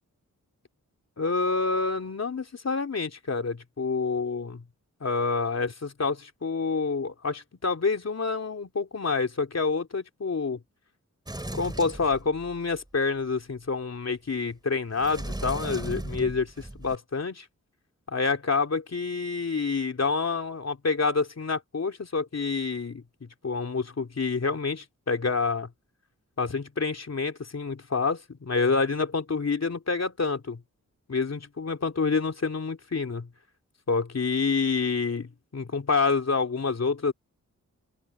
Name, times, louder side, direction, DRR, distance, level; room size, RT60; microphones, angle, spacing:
voice 1, 1.2-4.6 5.0-10.6 11.5-17.5 18.1-25.7 26.4-30.6 31.1-33.3 33.9-37.1, left 4 dB, 50° left, 3.4 m, -28 dB
Sliding door, 11.3-12.8 14.9-17.0, right 1 dB, 15° right, 3.1 m, -36 dB
wide cardioid pair, 125°, 33 cm